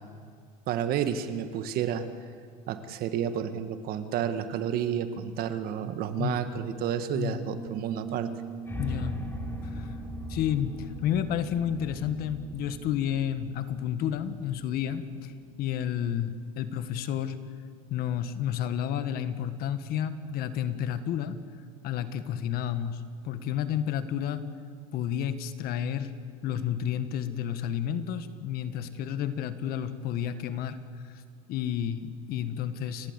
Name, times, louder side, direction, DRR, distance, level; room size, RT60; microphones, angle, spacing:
voice 1, 0.7-2.1 2.7-8.3, right 9 dB, 50° right, 10 dB, 1.6 m, -30 dB
Piano, 7.5-16.0, right 7 dB, 30° left, 5.2 m, -45 dB
sound 1, 8.7-14.8, left 1 dB, 10° left, 3.0 m, -39 dB
voice 2, 8.8-9.2 9.7-9.9 10.3-15.3 15.6-17.4 17.9-21.4 21.8-24.5 24.9-26.1 26.4-30.8 31.1-31.2 31.5-33.1, left 9 dB, 55° left, 11 dB, 1.5 m, -31 dB
29.5 x 13.5 x 8.2 m, 2.1 s
supercardioid pair, 110°, 19 cm